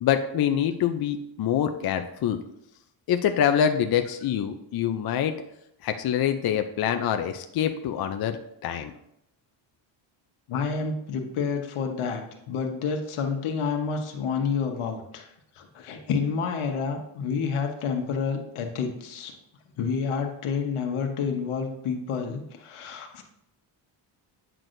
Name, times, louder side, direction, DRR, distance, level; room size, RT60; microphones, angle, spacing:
voice 1, 0.0-2.4 3.1-5.3 5.8-8.4 8.6-8.9, left 9 dB, 50° left, 7 dB, 0.5 m, -25 dB
voice 2, 10.5-15.3 15.6-19.3 19.8-23.2, left 5 dB, 85° left, 3 dB, 1.2 m, -29 dB
9.1 x 6.1 x 2.6 m, 0.78 s
cardioid pair, 125°, 49 cm